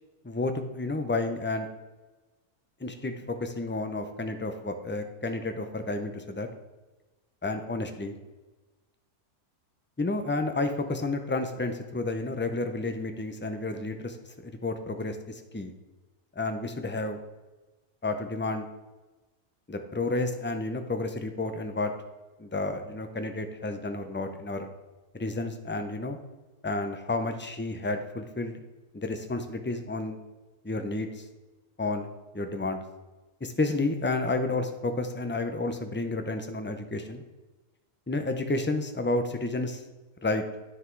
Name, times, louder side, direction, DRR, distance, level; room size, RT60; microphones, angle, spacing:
voice 1, 0.2-1.7 2.8-6.5 7.4-8.2 10.0-14.2 14.4-15.7 16.4-17.2 18.0-18.7 19.7-21.9 22.4-24.7 25.1-26.2 26.6-28.6 28.9-30.2 30.6-31.2 31.8-32.1 32.3-32.8 33.4-37.2 38.1-39.8 40.2-40.4, left 2 dB, 15° left, 7 dB, 0.4 m, -31 dB
9.8 x 6.5 x 4.6 m, 1.2 s
omnidirectional pair, 1.5 m